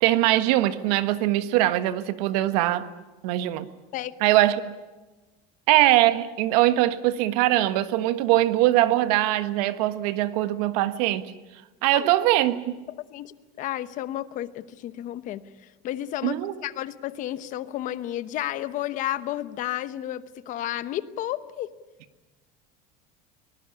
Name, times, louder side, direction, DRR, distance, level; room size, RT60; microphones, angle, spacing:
voice 1, 0.0-2.9 3.2-3.7 4.2-4.6 5.7-11.2 11.8-12.8 16.2-16.5, right 15 dB, 80° right, 12 dB, 1.5 m, -22 dB
voice 2, 3.9-4.4 11.9-12.1 13.1-15.4 15.8-21.7, left 13 dB, 40° left, 13 dB, 1.0 m, -32 dB
23.0 x 19.5 x 9.9 m, 1.2 s
cardioid pair, 165°, 20 cm